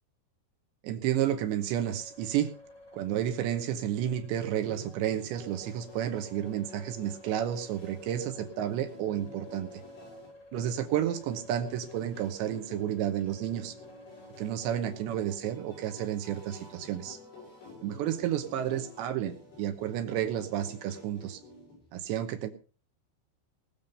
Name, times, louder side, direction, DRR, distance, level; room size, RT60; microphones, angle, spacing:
voice 1, 0.8-2.5 2.9-9.7 10.5-13.7 14.4-17.2 17.8-21.4 21.9-22.5, right 11 dB, 75° right, 8 dB, 3.1 m, -31 dB
sound 1, 1.6-15.4, left 1 dB, 30° left, 1.4 m, -53 dB
sound 2, 4.5-22.0, left 3 dB, 80° left, 9.3 m, -50 dB
20.0 x 7.3 x 5.3 m, 0.38 s
omnidirectional pair, 5.6 m